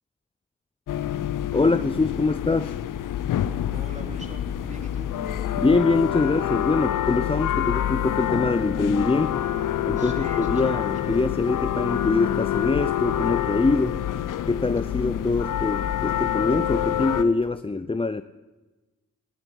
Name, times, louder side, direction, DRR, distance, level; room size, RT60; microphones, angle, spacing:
sound 1, 0.9-17.2, left 11 dB, 80° left, 0.7 m, -27 dB
voice 1, 1.5-2.7 5.6-9.4 9.9-14.0 14.5-18.2, left 3 dB, 20° left, 11 dB, 0.6 m, -24 dB
voice 2, 3.7-5.1 10.0-11.3, right 1 dB, 25° right, 2 dB, 3.8 m, -43 dB
14.5 x 9.8 x 9.7 m, 1.2 s
supercardioid pair, 40°, 31 cm